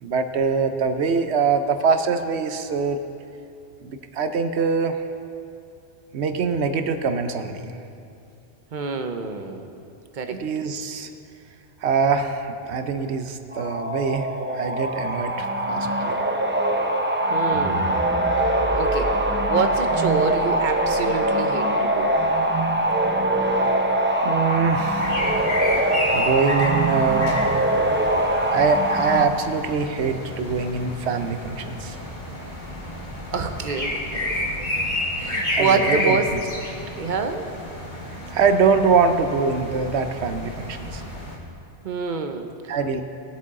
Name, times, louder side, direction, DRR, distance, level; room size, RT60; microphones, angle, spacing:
voice 1, 0.0-3.0 3.8-5.0 6.1-7.7 10.3-11.1 11.8-16.1 24.2-25.2 25.7-27.7 28.5-32.0 35.5-36.4 38.3-41.0 42.7-43.0, right 5 dB, 75° right, 8 dB, 1.0 m, -23 dB
voice 2, 8.7-9.7 10.1-10.4 17.3-18.0 18.7-19.1 19.5-22.1 33.3-34.8 35.2-36.3 37.0-37.5 41.8-43.0, right 5 dB, 50° right, 6 dB, 0.9 m, -27 dB
sound 1, 13.5-29.3, right 1 dB, 15° right, 0.5 m, -23 dB
sound 2, 17.5-23.8, equal, 70° left, 3.5 m, -37 dB
sound 3, 25.0-41.4, left 1 dB, 45° left, 1.7 m, -30 dB
20.0 x 7.9 x 3.7 m, 2.6 s
omnidirectional pair, 1.1 m